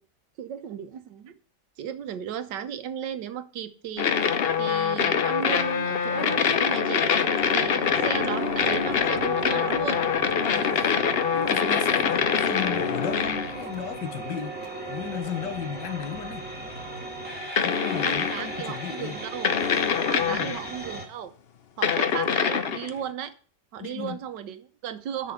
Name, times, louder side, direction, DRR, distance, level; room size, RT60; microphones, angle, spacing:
voice 1, 0.4-1.3 1.8-4.1 4.6-7.0 7.5-10.0 18.0-19.5 20.1-21.3 21.8-23.3 23.7-25.3, right 9 dB, 75° right, 1.6 m, -35 dB
sound 1, 4.0-13.7 16.0-16.1 17.6-18.5 19.4-20.7 21.8-22.9, left 7 dB, 55° left, 0.6 m, -24 dB
sound 2, 7.0-21.1, right 2 dB, 5° right, 2.2 m, -37 dB
voice 2, 10.5-11.0 11.3-16.5 17.6-19.2 20.3-20.5 23.8-24.2, left 9 dB, 75° left, 1.6 m, -35 dB
7.7 x 6.2 x 7.8 m
omnidirectional pair, 1.9 m